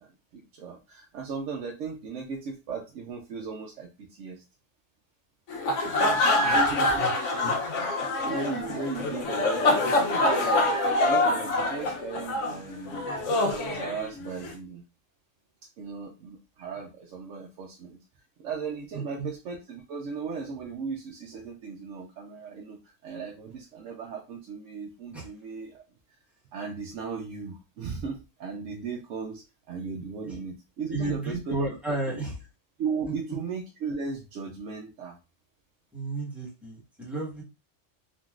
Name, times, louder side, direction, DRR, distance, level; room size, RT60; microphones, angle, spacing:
voice 1, 0.0-4.4 5.8-7.3 8.2-13.1 13.5-14.8 15.8-18.0 18.4-22.8 23.0-25.8 26.5-29.4 29.7-31.5 32.8-35.2, right 5 dB, 80° right, 0 dB, 1.0 m, -37 dB
sound 1, 5.5-14.5, left 2 dB, 80° left, 1.0 m, -25 dB
voice 2, 7.0-7.5 18.9-19.3 25.1-25.3 30.2-30.3 30.9-32.3 35.9-37.4, right 2 dB, ahead, -6 dB, 1.2 m, -33 dB
3.6 x 2.5 x 2.4 m, 0.28 s
omnidirectional pair, 1.3 m